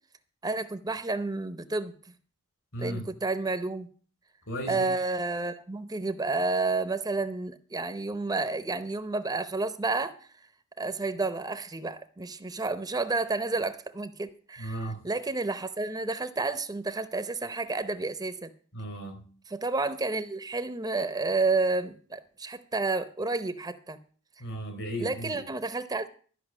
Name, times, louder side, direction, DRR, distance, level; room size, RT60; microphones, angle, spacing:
voice 1, 0.4-1.9 2.8-3.9 4.7-10.1 10.8-18.5 19.5-24.0 25.0-26.1, right 3 dB, 20° right, 11 dB, 0.7 m, -30 dB
voice 2, 2.7-3.1 4.5-4.9 14.6-15.0 18.7-19.2 24.4-25.4, right 1 dB, 65° left, 6 dB, 4.3 m, -35 dB
13.0 x 5.7 x 8.2 m, 0.43 s
head